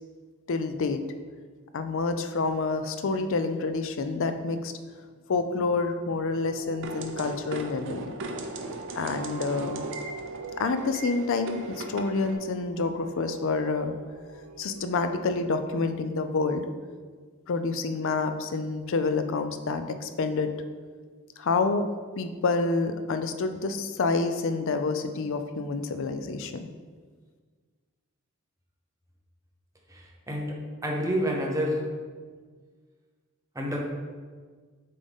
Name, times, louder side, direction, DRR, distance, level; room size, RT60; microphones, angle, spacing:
voice 1, 0.5-1.0 1.7-4.7 5.3-8.1 9.0-9.8 10.6-14.0 14.6-16.7 17.5-20.5 21.4-21.9 22.2-26.7, left 3 dB, 65° left, 9 dB, 0.5 m, -28 dB
sound 1, 6.3-16.0, right 4 dB, 80° right, 1.1 m, -44 dB
sound 2, 6.8-12.3, right 2 dB, 60° right, 0.6 m, -38 dB
voice 2, 29.9-30.5 30.8-31.8 33.5-33.8, equal, 15° right, -1 dB, 0.9 m, -28 dB
7.6 x 3.8 x 3.6 m, 1.6 s
head